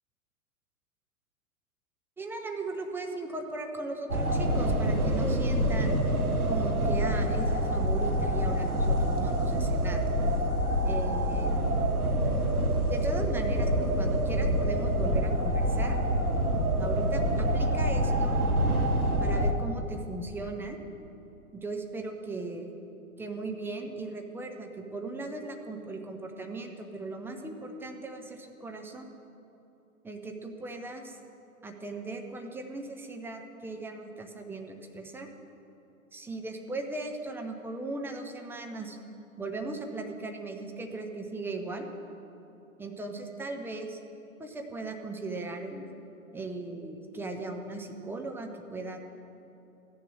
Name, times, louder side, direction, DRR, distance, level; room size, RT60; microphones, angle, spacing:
voice 1, 2.2-6.0 6.5-10.1 10.8-11.6 12.9-16.0 16.8-18.4 19.2-20.8 21.5-22.7 23.2-29.1 30.0-31.2 31.6-35.3 36.1-39.0 39.4-41.9 42.8-44.0 44.4-45.9 46.3-49.0, right 2 dB, 5° right, 3 dB, 0.7 m, -38 dB
sound 1, 4.1-19.5, equal, 90° right, 1.4 m, -26 dB
14.5 x 10.5 x 6.3 m, 2.9 s
figure-of-eight pair, 115°, 43 cm